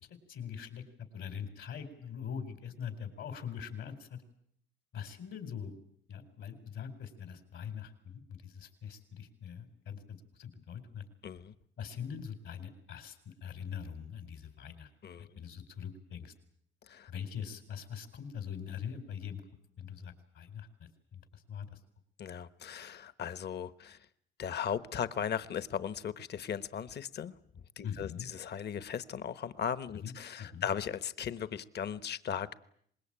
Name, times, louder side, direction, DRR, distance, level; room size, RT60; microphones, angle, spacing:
voice 1, 0.3-0.8 1.1-4.2 4.9-5.7 6.1-11.0 11.8-14.9 15.2-16.3 17.1-19.4 19.8-21.8 27.8-28.3 29.9-30.7, left 7 dB, 75° left, 9 dB, 4.5 m, -43 dB
voice 2, 11.2-11.5 15.0-15.3 16.9-17.1 22.2-24.0 24.4-27.3 27.8-32.5, left 8 dB, 55° left, 15 dB, 1.2 m, -37 dB
25.0 x 21.0 x 8.9 m, 0.67 s
cardioid pair, 90°, 20 cm